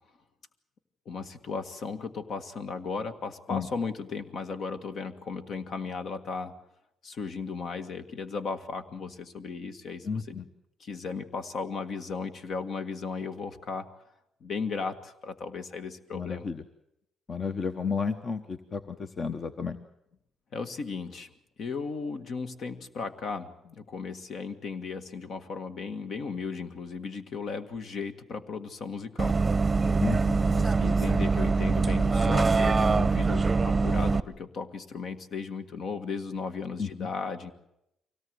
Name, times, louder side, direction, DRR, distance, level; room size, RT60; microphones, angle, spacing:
voice 1, 1.0-6.5 7.0-10.1 10.8-13.9 14.4-16.5 20.5-21.3 21.6-29.4 30.5-37.5, left 5 dB, 60° left, 8 dB, 1.7 m, -36 dB
voice 2, 10.0-10.4 16.1-16.6 17.3-19.8 30.0-30.4 36.8-37.1, left 5 dB, 40° left, 9 dB, 1.1 m, -32 dB
Bus, 29.2-34.2, right 4 dB, 25° right, 0.7 m, -24 dB
24.0 x 17.5 x 7.9 m, 0.82 s
cardioid pair, 90°, 0 cm